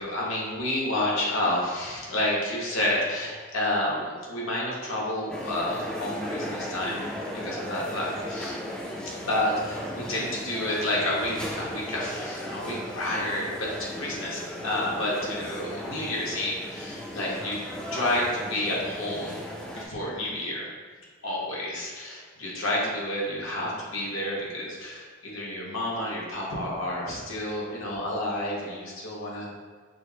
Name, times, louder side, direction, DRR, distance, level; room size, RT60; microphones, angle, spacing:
voice 1, 0.0-8.6 9.2-17.6 17.9-20.7 21.2-29.5, left 1 dB, 85° left, -4 dB, 1.0 m, -30 dB
sound 1, 5.3-19.9, equal, 5° left, 0.3 m, -36 dB
6.0 x 2.0 x 2.7 m, 1.5 s
head